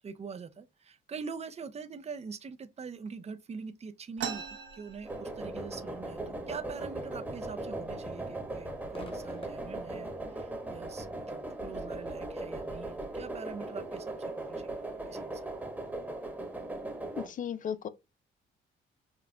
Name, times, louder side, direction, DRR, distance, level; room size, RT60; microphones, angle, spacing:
voice 1, 0.0-14.7 15.1-15.6, right 5 dB, 35° right, 0.6 m, -44 dB
sound 1, 4.2-5.8 6.1-6.2 6.5-7.1 7.7-7.9 8.6-8.7 9.2-9.7, right 7 dB, 70° right, 1.0 m, -40 dB
sound 2, 5.0-17.3, right 2 dB, 10° right, 1.1 m, -39 dB
Crowd / Fireworks, 8.9-16.2, left 1 dB, 25° left, 1.1 m, -56 dB
voice 2, 17.1-17.9, left 8 dB, 40° left, 0.4 m, -35 dB
5.1 x 2.2 x 2.3 m
cardioid pair, 90°, 20 cm